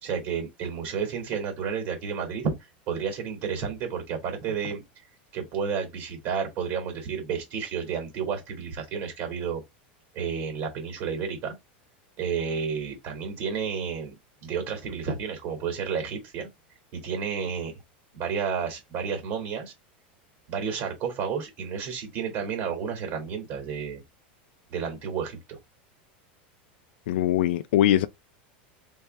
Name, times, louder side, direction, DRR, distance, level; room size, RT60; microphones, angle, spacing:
voice 1, 0.0-2.5 2.9-4.8 5.3-9.6 10.1-11.5 12.2-14.1 14.4-16.5 16.9-17.7 18.1-19.7 20.5-24.0 24.7-25.6, right 6 dB, 50° right, 2.2 m, -31 dB
voice 2, 27.1-28.1, left 12 dB, 85° left, 0.4 m, -22 dB
3.5 x 3.2 x 3.2 m
supercardioid pair, 155°, 6 cm